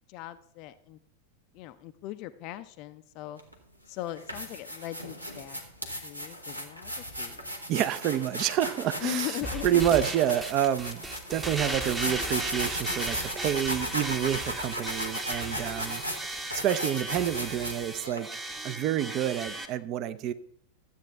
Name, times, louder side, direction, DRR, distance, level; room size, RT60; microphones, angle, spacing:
voice 1, 0.1-1.0 1.5-3.4 3.9-5.6 5.9-7.5 9.0-9.8, left 15 dB, 40° left, 10 dB, 0.4 m, -39 dB
sound 1, 3.4-3.5 4.1-18.2, equal, 90° right, 1.2 m, -36 dB
voice 2, 7.7-9.3 9.6-11.0 11.3-16.0 16.6-20.3, right 11 dB, 40° right, 12 dB, 0.6 m, -28 dB
sound 2, 9.4-19.7, right 2 dB, 10° right, 0.9 m, -36 dB
13.0 x 8.2 x 3.4 m, 0.66 s
figure-of-eight pair, 90°, 0 cm